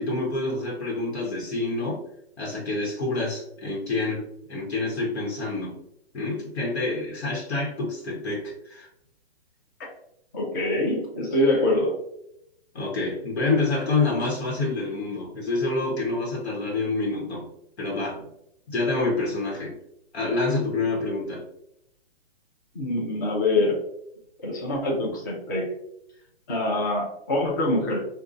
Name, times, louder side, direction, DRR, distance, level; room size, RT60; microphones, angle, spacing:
voice 1, 0.0-2.0 2.4-5.8 6.1-8.9 12.7-17.5 17.8-18.3 18.7-19.7 20.1-21.5, left 3 dB, 90° left, -2 dB, 1.1 m, -27 dB
voice 2, 10.3-11.9 22.7-23.8 24.4-25.7 26.5-28.0, left 2 dB, 20° left, -2 dB, 0.4 m, -24 dB
3.8 x 2.2 x 2.5 m, 0.79 s
hypercardioid pair, 150°, 31 cm